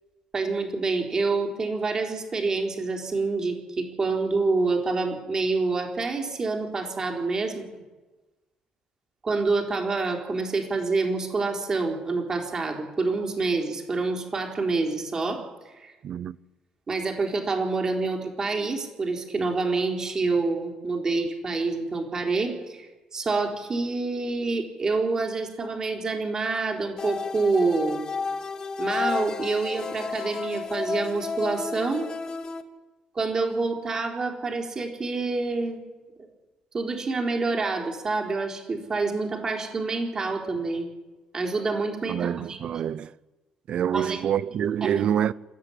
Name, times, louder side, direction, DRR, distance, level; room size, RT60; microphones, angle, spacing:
voice 1, 0.3-7.7 9.2-15.9 16.9-28.1 28.8-32.1 33.1-35.8 36.7-40.9 41.3-42.7 43.9-44.3 44.8-45.0, right 3 dB, 25° right, 4.1 m, -27 dB
voice 2, 16.0-16.4 42.1-43.1 43.7-45.3, right 9 dB, 50° right, 0.7 m, -26 dB
sound 1, 27.0-32.6, left 5 dB, 30° left, 1.7 m, -32 dB
27.0 x 14.0 x 10.0 m
cardioid pair, 150°, 2 cm